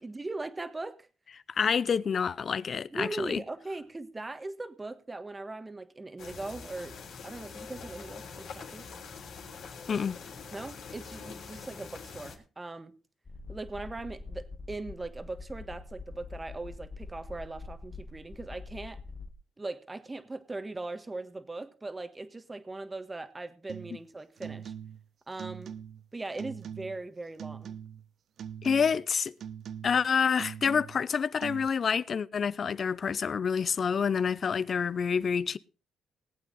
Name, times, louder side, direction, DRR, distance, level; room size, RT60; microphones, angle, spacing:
voice 1, 0.0-1.1 2.9-6.9 7.2-8.9 10.5-12.9 13.5-19.0 19.6-24.7 25.3-25.7 26.1-27.8, right 2 dB, 20° right, 1.5 m, -40 dB
voice 2, 1.5-3.4 9.9-10.2 28.6-29.3 29.8-35.6, left 6 dB, 45° left, 0.5 m, -28 dB
sound 1, 6.2-12.4, left 5 dB, 70° left, 3.2 m, -44 dB
sound 2, 13.3-19.3, left 3 dB, 30° left, 1.4 m, -44 dB
sound 3, 23.7-24.0 24.4-25.1 25.4-26.1 26.4-27.0 27.4-28.1 28.4-29.0 29.4-30.1 30.4-31.1 31.4-31.7, right 8 dB, 60° right, 0.5 m, -42 dB
19.0 x 8.4 x 4.0 m
cardioid pair, 90°, 0 cm